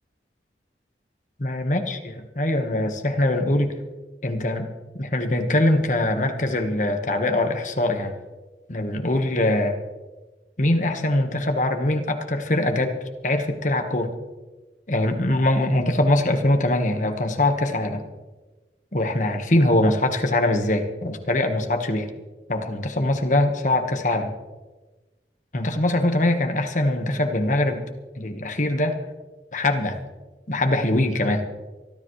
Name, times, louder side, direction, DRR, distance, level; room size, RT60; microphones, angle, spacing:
voice 1, 1.4-2.0 2.4-3.7 4.2-4.7 4.9-8.1 8.7-9.8 10.6-12.9 13.2-14.1 14.9-18.0 18.9-22.1 22.5-24.3 25.5-27.9 28.2-29.0 29.5-30.0 30.5-31.4, left 1 dB, 45° left, 5 dB, 1.5 m, -22 dB
24.5 x 12.5 x 3.3 m, 1.2 s
head